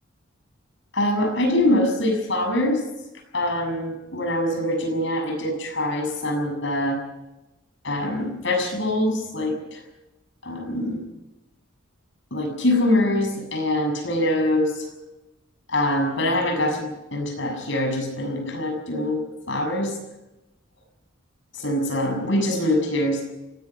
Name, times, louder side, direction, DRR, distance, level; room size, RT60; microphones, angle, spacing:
voice 1, 0.9-2.8 3.3-7.0 7.8-9.8 10.4-11.0 12.3-14.9 15.7-20.0 21.5-23.2, left 1 dB, 60° left, 4 dB, 7.0 m, -24 dB
24.5 x 18.5 x 5.9 m, 0.99 s
head